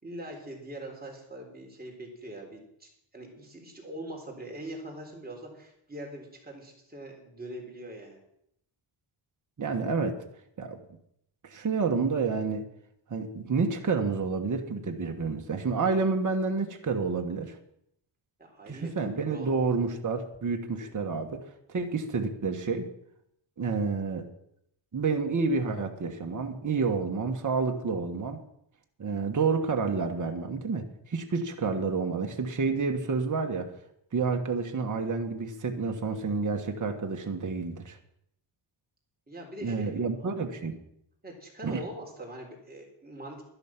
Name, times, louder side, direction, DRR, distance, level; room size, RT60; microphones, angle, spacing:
voice 1, 0.0-8.2 18.4-18.9 19.3-19.5 20.8-20.9 39.3-39.9 41.2-43.4, right 1 dB, 20° right, -1 dB, 3.8 m, -42 dB
voice 2, 9.6-10.2 10.6-10.8 11.4-12.6 13.1-17.6 18.7-22.9 23.6-24.3 24.9-28.4 29.0-33.7 34.1-38.0 39.6-40.7 41.6-41.8, right 4 dB, 40° right, 3 dB, 1.4 m, -29 dB
12.0 x 10.5 x 6.0 m, 0.75 s
wide cardioid pair, 125°, 48 cm